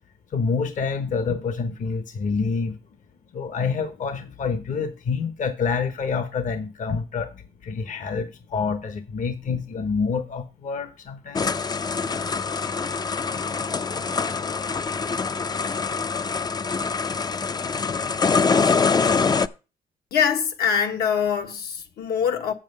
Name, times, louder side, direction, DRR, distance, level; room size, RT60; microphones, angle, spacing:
voice 1, 0.3-2.8 3.3-11.7, left 5 dB, 50° left, 1.0 m, -27 dB
Computer - robot electronic noises, 11.4-19.5, left 5 dB, 25° left, 0.4 m, -24 dB
voice 2, 20.1-22.5, left 7 dB, 75° left, 1.3 m, -23 dB
7.5 x 7.2 x 5.5 m
cardioid pair, 90°, 16 cm